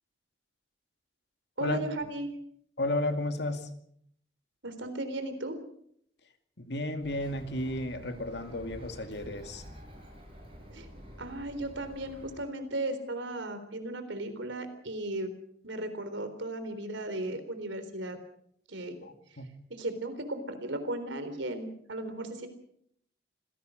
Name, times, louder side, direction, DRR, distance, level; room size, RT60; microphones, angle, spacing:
voice 1, 1.6-2.3 4.6-5.6 10.7-10.9 11.2-15.3 15.6-18.2 18.7-19.0 19.7-22.5, right 1 dB, 80° right, 9 dB, 3.8 m, -36 dB
voice 2, 2.8-3.7 6.6-9.6 19.0-19.5, left 1 dB, 60° left, 7 dB, 2.4 m, -33 dB
Bird, 7.0-12.4, equal, 30° right, 7.4 m, -49 dB
26.0 x 17.5 x 6.5 m, 0.69 s
head